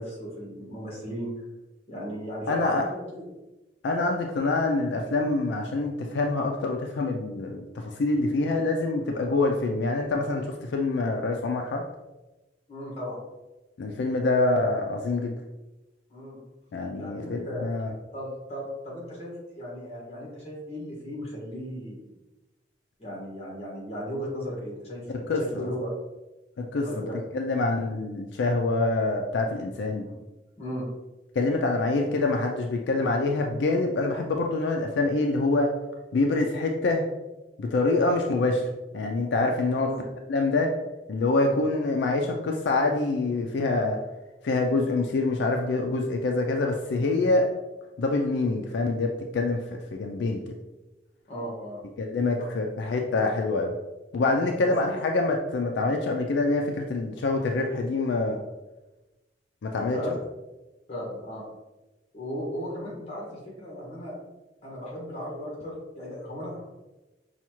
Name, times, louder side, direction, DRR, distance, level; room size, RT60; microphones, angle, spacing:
voice 1, 0.0-1.4 1.9-3.2 12.7-13.2 16.1-16.4 17.0-17.7 18.1-22.1 23.0-25.9 26.8-27.2 30.0-30.2 30.6-30.9 39.8-40.0 51.3-51.8 52.4-52.5 54.6-54.8 59.9-60.2 60.9-61.4 62.1-64.2 64.6-66.6, equal, 35° left, -4 dB, 1.4 m, -36 dB
voice 2, 2.5-2.8 3.8-11.8 13.8-15.4 16.7-17.9 25.3-25.7 26.6-27.1 27.3-30.0 31.4-35.7 36.1-37.0 37.6-38.6 38.9-39.9 40.3-40.7 41.1-44.0 44.4-47.5 48.0-50.4 52.0-53.7 54.1-58.4 59.6-60.0, left 3 dB, 80° left, 2 dB, 0.4 m, -25 dB
5.5 x 2.3 x 2.9 m, 1.1 s
head